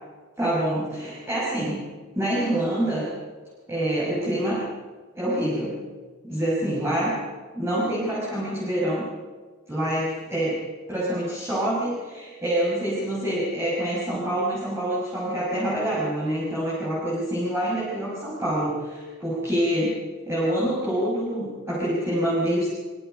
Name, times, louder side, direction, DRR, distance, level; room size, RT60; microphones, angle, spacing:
voice 1, 0.4-1.8 2.1-3.1 3.7-4.6 5.1-5.8 6.2-7.2 7.5-9.1 9.7-10.6 10.9-22.7, right 1 dB, 15° right, -6 dB, 6.2 m, -26 dB
25.0 x 24.5 x 5.2 m, 1.4 s
head